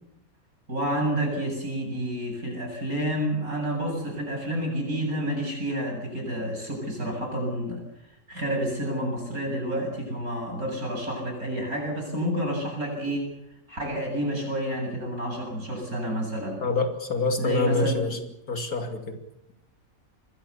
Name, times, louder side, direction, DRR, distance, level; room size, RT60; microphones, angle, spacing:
voice 1, 0.7-7.8 8.3-13.3 13.7-16.7 17.4-18.0, equal, 80° right, 2 dB, 8.4 m, -29 dB
voice 2, 16.6-18.2 18.5-19.2, left 3 dB, 80° left, 5 dB, 3.4 m, -26 dB
26.5 x 21.0 x 7.1 m, 0.88 s
omnidirectional pair, 1.5 m